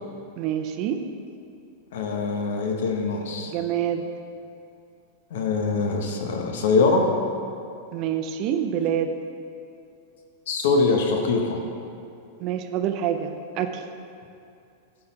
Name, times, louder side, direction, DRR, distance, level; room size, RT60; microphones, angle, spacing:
voice 1, 0.4-1.0 3.5-4.1 7.9-9.1 12.4-13.8, right 9 dB, 40° right, 7 dB, 0.5 m, -26 dB
voice 2, 1.9-3.5 5.3-7.1 10.5-11.6, left 4 dB, 70° left, 2 dB, 1.1 m, -23 dB
10.5 x 3.9 x 4.5 m, 2.6 s
supercardioid pair, 140°, 0 cm